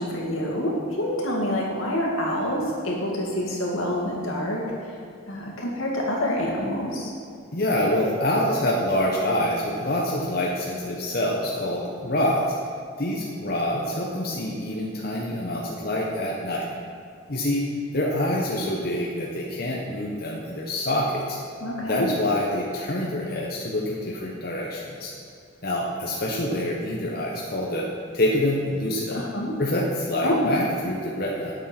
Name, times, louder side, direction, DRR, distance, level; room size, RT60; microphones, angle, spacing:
voice 1, 0.0-4.6 5.3-7.1 21.6-22.1 29.1-29.5 30.2-30.5, equal, 80° left, -2 dB, 2.1 m, -27 dB
voice 2, 7.5-12.6 13.0-16.7 17.3-17.7 17.9-21.4 21.8-25.1 25.6-27.9 28.1-29.2 29.6-31.5, left 1 dB, 45° left, -3 dB, 1.1 m, -26 dB
8.8 x 7.4 x 5.9 m, 2.4 s
head